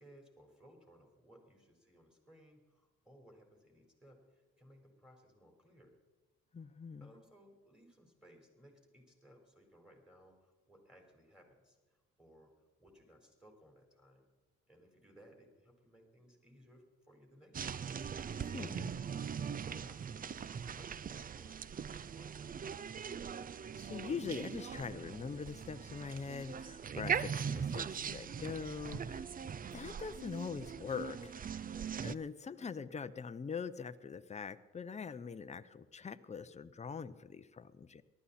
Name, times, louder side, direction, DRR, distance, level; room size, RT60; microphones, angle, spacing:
voice 1, 0.0-5.9 7.0-12.5 12.8-14.3 14.7-17.8 19.4-22.9 31.7-32.0, equal, ahead, 2 dB, 4.5 m, -62 dB
voice 2, 6.5-7.1 18.3-18.9 23.8-29.2 29.7-31.3 32.0-38.0, left 5 dB, 25° left, 11 dB, 0.7 m, -43 dB
sound 1, 17.5-32.1, right 7 dB, 30° right, 0.4 m, -41 dB
19.0 x 13.0 x 4.3 m, 1.2 s
cardioid pair, 90°, 30 cm